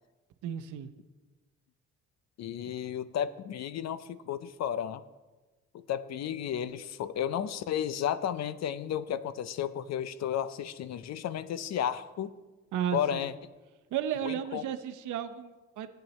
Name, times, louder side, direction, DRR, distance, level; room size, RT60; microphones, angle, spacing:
voice 1, 0.4-0.9 2.7-2.8 12.7-13.3 13.9-15.9, right 9 dB, 80° right, 10 dB, 0.8 m, -34 dB
voice 2, 2.4-5.0 5.7-12.3 12.9-13.3 14.2-14.6, left 9 dB, 60° left, 14 dB, 0.6 m, -33 dB
14.0 x 9.1 x 3.1 m, 1.2 s
cardioid pair, 90°, 30 cm